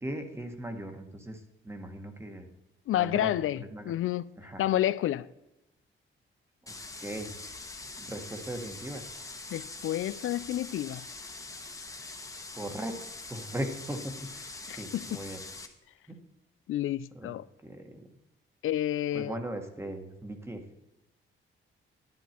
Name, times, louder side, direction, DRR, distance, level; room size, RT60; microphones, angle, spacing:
voice 1, 0.0-2.5 2.9-3.9 4.4-4.6 6.6-6.7 7.0-7.5 8.0-9.0 12.5-12.9 13.3-15.4 16.1-16.2 17.1-17.3 17.6-17.9 19.1-20.6, right 1 dB, 10° right, 1.4 m, -38 dB
voice 2, 2.9-4.3 4.6-5.3 9.5-11.0 14.7-15.2 16.7-17.4 18.6-19.4, left 13 dB, 75° left, 0.4 m, -30 dB
sound 1, 6.7-15.7, left 3 dB, 15° left, 1.2 m, -43 dB
11.0 x 10.5 x 4.4 m
wide cardioid pair, 160°, 21 cm